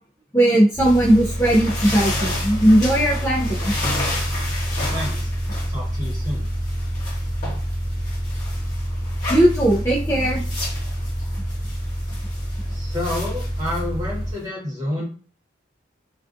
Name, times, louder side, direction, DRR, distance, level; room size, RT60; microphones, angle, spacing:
voice 1, 0.3-3.7 9.3-10.4, right 1 dB, 15° left, -5 dB, 0.3 m, -18 dB
sound 1, 0.7-14.3, equal, 50° right, 1.0 m, -27 dB
sound 2, 0.8-14.4, left 2 dB, 40° left, 1.1 m, -33 dB
voice 2, 4.9-5.3 5.7-6.5 12.7-15.0, left 1 dB, 20° right, -4 dB, 0.9 m, -29 dB
2.4 x 2.3 x 2.4 m, 0.40 s
head